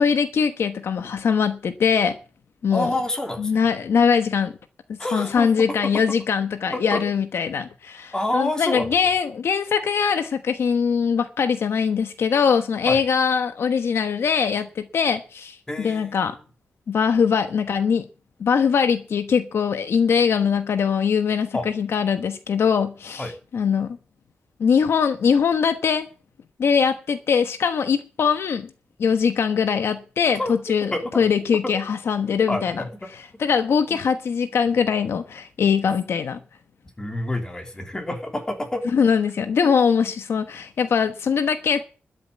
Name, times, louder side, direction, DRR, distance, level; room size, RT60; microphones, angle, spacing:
voice 1, 0.0-2.2 2.6-2.9 3.4-4.5 4.9-16.3 16.9-18.1 18.4-24.0 24.6-26.1 26.6-28.7 29.0-32.8 33.4-36.4 38.9-41.8, left 6 dB, 65° left, 1.1 m, -22 dB
voice 2, 2.7-3.6 5.0-5.5 5.8-5.9 6.7-7.0 8.1-8.9 12.9-13.0 15.7-16.4 21.5-21.7 23.2-23.3 30.4-30.5 30.9-31.2 32.3-33.1 37.0-38.8 39.6-39.7, left 1 dB, 15° left, 3.0 m, -28 dB
12.5 x 7.5 x 8.6 m
wide cardioid pair, 160°, 5 cm